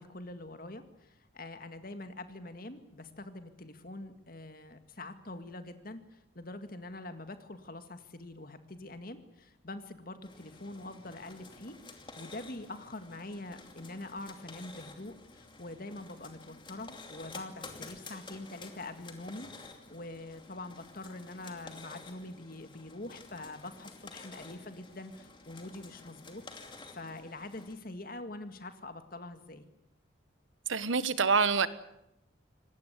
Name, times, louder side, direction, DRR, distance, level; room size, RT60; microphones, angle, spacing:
voice 1, 0.0-29.7, left 2 dB, 45° left, 2.0 m, -45 dB
sound 1, 10.2-27.8, left 3 dB, 25° left, 2.6 m, -51 dB
voice 2, 30.7-31.7, right 5 dB, 70° right, 1.3 m, -26 dB
25.5 x 19.5 x 8.3 m
head